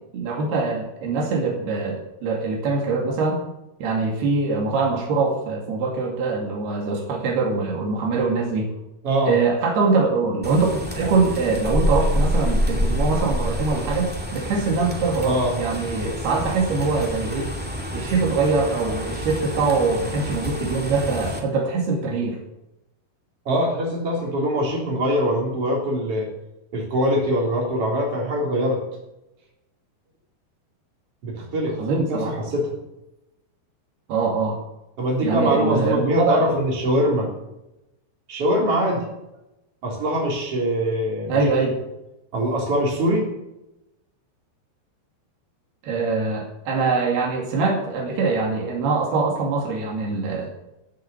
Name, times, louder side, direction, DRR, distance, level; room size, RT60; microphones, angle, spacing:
voice 1, 0.1-3.4 3.8-8.7 9.3-17.5 17.9-22.4 31.8-32.3 34.1-34.6 35.2-36.5 41.3-41.8 45.8-50.5, right 4 dB, 85° right, 0 dB, 4.4 m, -23 dB
voice 2, 9.0-9.4 15.2-15.5 23.5-26.3 26.7-28.8 31.2-31.8 32.1-32.8 35.0-37.3 38.3-39.1 39.8-41.4 42.3-43.3, equal, 40° right, -2 dB, 4.4 m, -23 dB
sound 1, 10.4-21.4, equal, 5° right, 1.2 m, -27 dB
15.5 x 7.8 x 7.1 m, 0.93 s
omnidirectional pair, 4.4 m